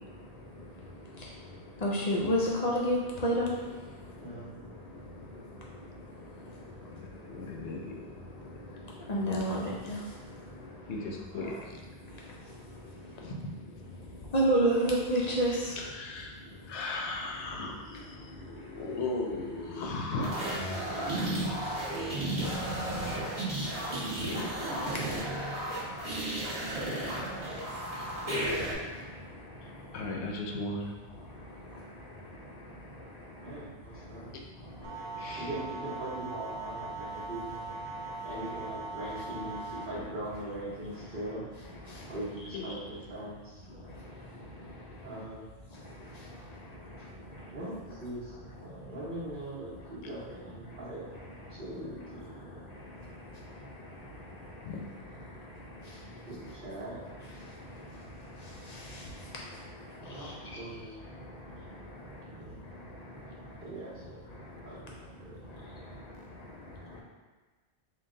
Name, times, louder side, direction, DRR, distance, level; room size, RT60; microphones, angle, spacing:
voice 1, 1.8-3.5 9.1-10.0 14.3-15.7 21.6-21.7 41.9-42.0 58.7-59.0 60.1-60.3, right 1 dB, 55° left, -4 dB, 0.5 m, -28 dB
voice 2, 4.2-4.5 11.3-11.6 33.4-34.3 35.4-37.7 38.2-41.4 42.1-43.6 45.0-45.5 47.5-51.0 51.5-52.6 56.3-57.0 60.0-61.0 62.3-62.6 63.6-64.2 64.6-65.3, right 1 dB, 50° right, -13 dB, 1.2 m, -41 dB
voice 3, 6.9-8.0 10.9-11.5 13.2-13.3 15.8-16.4 16.7-20.4 24.1-24.4 26.9-27.0 27.9-28.1 29.9-30.9 35.2-35.5 42.5-42.6 50.0-50.1 54.6-54.8, left 3 dB, 75° left, 1 dB, 0.9 m, -37 dB
sound 1, 20.2-28.7, right 1 dB, 35° right, 0.8 m, -33 dB
sound 2, 34.8-39.8, right 3 dB, 85° right, 0.9 m, -40 dB
3.9 x 2.3 x 3.7 m, 1.3 s
omnidirectional pair, 1.2 m